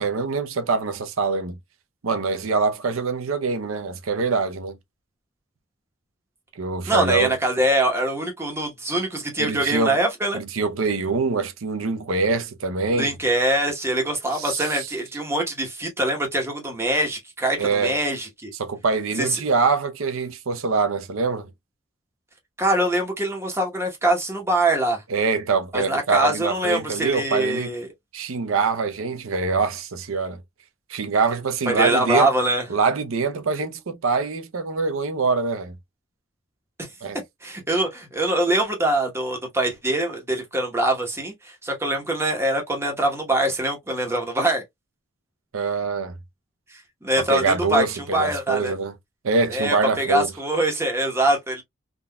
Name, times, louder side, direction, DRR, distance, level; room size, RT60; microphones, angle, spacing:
voice 1, 0.0-1.6 2.0-4.8 6.6-7.3 9.4-10.0 10.3-13.1 14.3-14.9 17.6-17.9 18.6-21.5 25.1-27.7 28.1-30.4 30.9-32.3 32.7-35.8 37.0-37.2 45.5-46.1 47.3-48.9 49.2-50.3, right 4 dB, 90° right, 0.6 m, -24 dB
voice 2, 6.9-10.4 12.9-18.5 19.2-19.4 22.6-25.0 25.7-27.9 31.7-32.6 36.8-36.9 37.4-44.6 47.0-47.8 48.1-48.7 49.5-51.6, right 1 dB, 15° right, 1.0 m, -23 dB
3.6 x 2.5 x 2.2 m
head